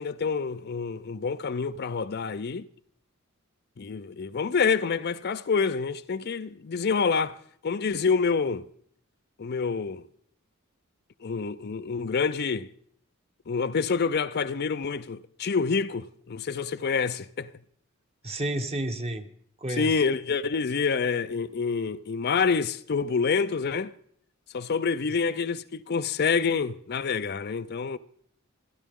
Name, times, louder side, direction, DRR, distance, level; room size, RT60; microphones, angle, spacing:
voice 1, 0.0-2.7 3.8-7.4 7.6-8.6 9.4-10.0 11.2-12.7 13.5-17.5 19.8-23.9 24.5-28.0, left 5 dB, 50° left, 0.5 m, -27 dB
voice 2, 18.2-19.3 19.6-20.0, right 1 dB, 30° right, 1.2 m, -30 dB
29.0 x 11.0 x 3.7 m
head